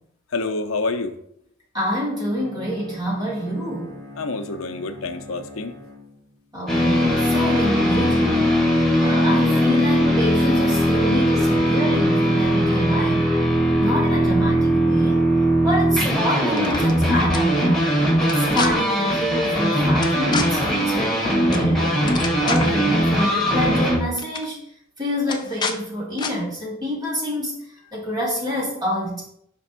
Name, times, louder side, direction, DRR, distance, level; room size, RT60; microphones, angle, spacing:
voice 1, 0.3-1.1 4.2-5.7 11.0-11.2, left 3 dB, 85° left, 6 dB, 0.6 m, -27 dB
voice 2, 1.7-4.0 6.5-13.3 13.8-15.2 15.6-22.0 22.4-24.6 25.0-27.5 27.9-29.2, equal, 20° right, -4 dB, 2.0 m, -27 dB
Bowed string instrument, 2.3-6.5, left 2 dB, 75° right, 2.3 m, -42 dB
sound 1, 6.7-24.0, equal, ahead, 1.1 m, -20 dB
sound 2, 16.5-16.9 17.3-17.4 18.2-18.7 20.0-20.5 21.5-21.7 21.9-22.8 23.7-23.9 24.2-24.4 25.3-25.8 26.2-26.3, left 5 dB, 20° left, 0.4 m, -28 dB
5.1 x 3.4 x 5.5 m, 0.73 s
head